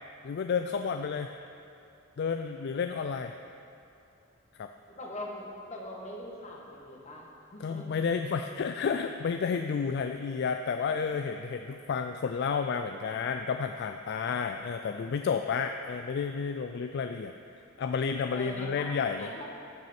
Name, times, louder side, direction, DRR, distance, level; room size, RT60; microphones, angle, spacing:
voice 1, 0.2-1.3 2.2-3.3 4.6-4.7 7.6-19.3, left 5 dB, 55° left, 6 dB, 0.3 m, -31 dB
voice 2, 5.0-7.9 10.9-11.0 18.3-18.9 19.1-19.4, left 1 dB, 35° left, -2 dB, 1.4 m, -42 dB
14.5 x 6.1 x 4.4 m, 2.6 s
head